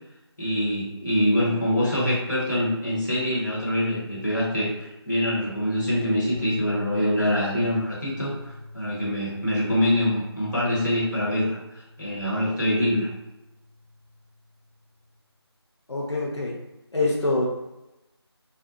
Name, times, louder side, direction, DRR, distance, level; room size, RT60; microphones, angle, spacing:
voice 1, 0.4-13.1, left 1 dB, 45° left, -7 dB, 1.1 m, -25 dB
sound 1, 6.3-14.7, left 2 dB, ahead, 0.7 m, -42 dB
voice 2, 15.9-16.6 16.9-17.5, left 2 dB, 85° left, -4 dB, 0.7 m, -25 dB
2.5 x 2.1 x 2.5 m, 0.97 s
figure-of-eight pair, 165°, 14 cm